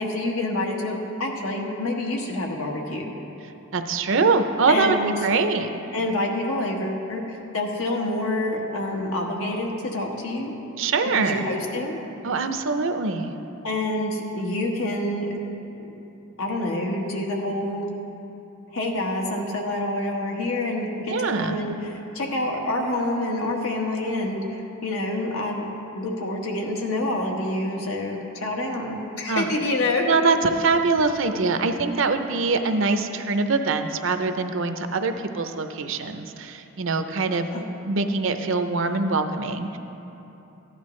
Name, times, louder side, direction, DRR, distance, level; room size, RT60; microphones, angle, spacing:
voice 1, 0.0-3.1 4.7-5.1 5.9-10.5 11.1-12.0 13.6-15.3 15.8-15.9 16.4-17.9 18.7-25.7 25.9-30.0 37.5-37.6, left 1 dB, 90° left, 0 dB, 1.5 m, -27 dB
voice 2, 3.7-5.0 5.2-5.7 10.8-11.5 12.2-13.3 21.1-21.6 29.3-29.5 30.1-37.5 37.8-39.8, right 4 dB, 65° right, 8 dB, 0.6 m, -23 dB
15.0 x 10.5 x 3.2 m, 3.0 s
head